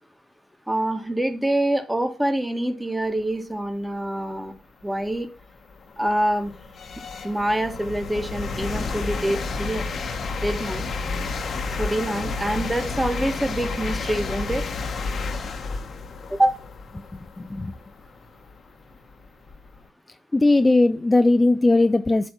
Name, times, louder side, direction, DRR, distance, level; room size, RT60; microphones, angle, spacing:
voice 1, 0.7-4.5 4.8-5.3 6.0-6.5 7.2-9.8 10.4-10.8 11.8-14.6 16.3-16.6, right 1 dB, 10° right, 7 dB, 1.5 m, -25 dB
sound 1, 4.4-4.5 5.1-19.8, left 4 dB, 60° left, 1.2 m, -31 dB
voice 2, 17.4-17.7 20.3-22.3, left 2 dB, 20° left, 10 dB, 0.5 m, -18 dB
7.7 x 3.4 x 5.8 m, 0.32 s
supercardioid pair, 60°, 0 cm